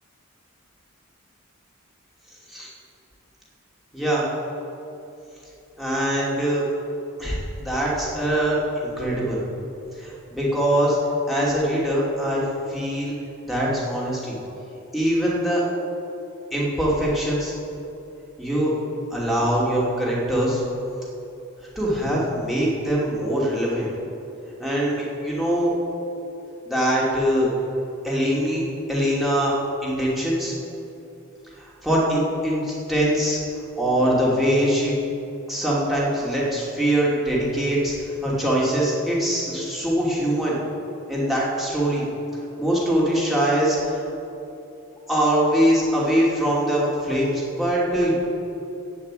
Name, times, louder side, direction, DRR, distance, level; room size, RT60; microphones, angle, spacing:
voice 1, 3.9-4.3 5.8-6.6 7.2-9.4 10.0-11.0 11.3-13.2 13.4-14.4 14.9-15.6 16.5-17.5 18.4-18.7 19.1-20.6 21.7-23.9 24.6-25.7 26.7-27.5 28.0-28.6 28.9-29.5 29.8-30.5 31.6-33.4 33.8-34.9 35.5-40.6 41.1-42.0 42.6-44.0 45.1-48.1, equal, ahead, -7 dB, 2.7 m, -23 dB
15.0 x 5.4 x 9.0 m, 2.8 s
head